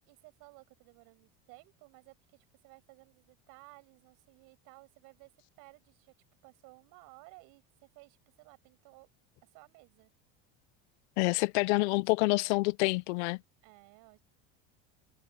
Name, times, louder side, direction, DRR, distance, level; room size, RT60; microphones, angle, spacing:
voice 1, 0.1-5.3 5.6-6.1 6.4-9.1 9.4-10.1 12.9-13.0 13.6-14.2, right 27 dB, 70° right, 6.7 m, -57 dB
voice 2, 11.2-13.4, left 25 dB, 90° left, 0.5 m, -27 dB
cardioid pair, 140°, 33 cm